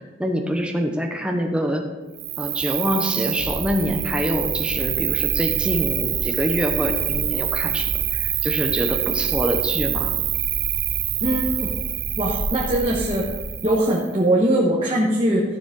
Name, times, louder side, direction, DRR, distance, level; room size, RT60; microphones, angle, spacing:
voice 1, 0.2-1.9 2.4-10.1, equal, 5° right, 3 dB, 0.9 m, -25 dB
Cricket, 2.2-14.1, right 20 dB, 60° right, 0.3 m, -26 dB
sound 1, 3.4-13.5, left 1 dB, 90° left, 1.5 m, -33 dB
voice 2, 11.2-11.7 12.2-13.2 13.6-15.4, right 1 dB, 30° right, -5 dB, 1.4 m, -21 dB
14.0 x 7.1 x 3.9 m, 1.2 s
head